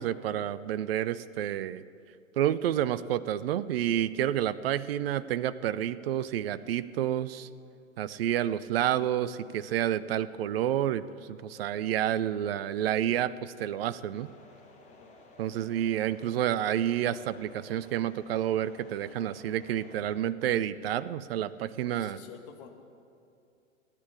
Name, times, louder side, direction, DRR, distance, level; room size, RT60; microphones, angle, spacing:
voice 1, 0.0-1.8 2.4-7.5 8.0-14.3 15.4-22.2, right 11 dB, 45° right, 16 dB, 0.6 m, -29 dB
sound 1, 14.1-20.2, left 2 dB, 20° left, 2.1 m, -55 dB
voice 2, 21.8-22.7, left 8 dB, 40° left, 3 dB, 2.1 m, -49 dB
16.5 x 10.0 x 8.3 m, 2.5 s
figure-of-eight pair, 110°, 40 cm